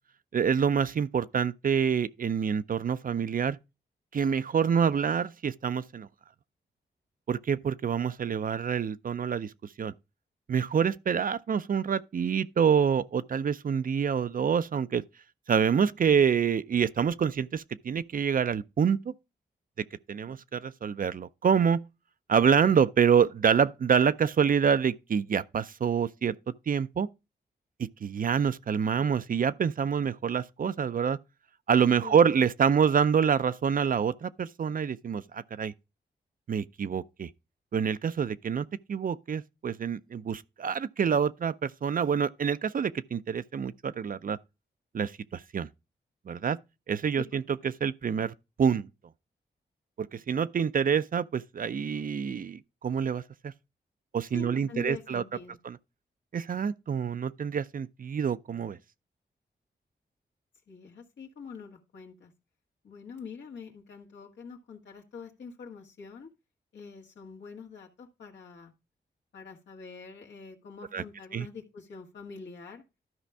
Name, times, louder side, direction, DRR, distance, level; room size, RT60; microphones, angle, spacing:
voice 1, 0.3-3.6 4.1-6.1 7.3-9.5 9.8-9.9 10.5-15.0 15.5-19.1 20.1-21.8 22.3-26.3 26.7-27.1 27.8-31.2 31.7-35.7 36.5-37.3 37.7-44.4 44.9-45.7 46.3-46.6 46.9-47.4 47.8-48.9 50.0-53.5 54.1-55.2 55.7-55.8 56.3-58.8 70.9-71.0 71.3-71.5, right 7 dB, 50° right, 0.5 m, -26 dB
voice 2, 54.3-55.6 60.7-62.3 62.8-66.3 66.7-68.7 69.3-72.8, left 5 dB, 80° left, 1.8 m, -45 dB
12.5 x 5.1 x 3.4 m
cardioid pair, 65°, 18 cm